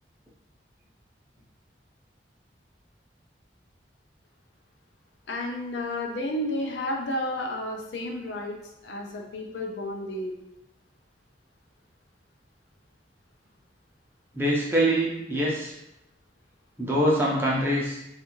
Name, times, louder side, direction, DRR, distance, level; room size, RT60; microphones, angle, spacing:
voice 1, 5.3-8.6 8.8-10.4, left 1 dB, 80° left, 1 dB, 0.5 m, -31 dB
voice 2, 14.3-15.7 16.8-18.0, equal, 15° right, -5 dB, 0.6 m, -24 dB
2.5 x 2.4 x 2.9 m, 0.85 s
head